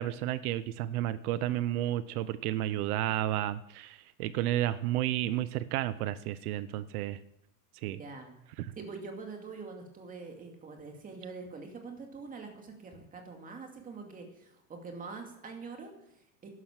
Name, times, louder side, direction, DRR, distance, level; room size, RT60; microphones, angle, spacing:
voice 1, 0.0-7.2 7.8-8.0 8.6-8.7, right 13 dB, 85° right, 15 dB, 0.8 m, -32 dB
voice 2, 8.0-8.3 8.8-16.5, right 4 dB, 20° right, 3 dB, 2.4 m, -44 dB
11.5 x 11.5 x 7.4 m, 0.78 s
supercardioid pair, 165°, 43 cm